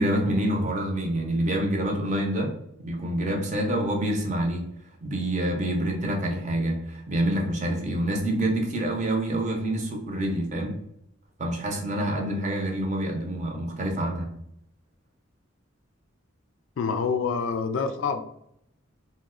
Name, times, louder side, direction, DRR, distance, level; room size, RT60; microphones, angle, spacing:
voice 1, 0.0-2.5 2.8-4.6 5.0-10.8 11.4-14.3, right 1 dB, 35° right, 1 dB, 0.6 m, -27 dB
voice 2, 16.8-18.2, left 5 dB, 70° left, 8 dB, 0.3 m, -26 dB
2.9 x 2.1 x 3.6 m, 0.76 s
head